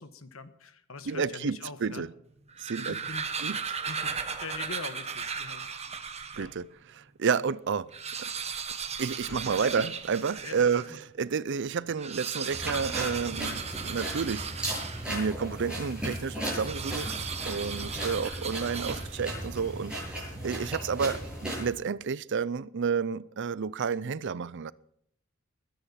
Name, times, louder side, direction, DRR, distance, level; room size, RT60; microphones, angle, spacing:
voice 1, 0.0-2.0 2.8-3.3 3.8-4.1 4.4-5.7 6.3-6.5 9.3-9.8 10.4-10.8 17.7-18.2 20.3-20.4, left 4 dB, 70° left, 1.4 m, -43 dB
voice 2, 1.1-2.1 2.6-3.0 3.4-3.6 6.4-6.7 6.9-7.9 8.2-8.3 9.0-14.5 15.1-24.7, right 6 dB, 60° right, 0.5 m, -30 dB
sound 1, 2.4-6.5 7.1-7.2 7.4-7.5 7.8-10.9 11.9-15.3 16.6-19.3, right 6 dB, 30° right, 1.4 m, -36 dB
sound 2, 12.5-21.7, right 1 dB, 5° right, 7.8 m, -36 dB
21.0 x 10.0 x 5.7 m
head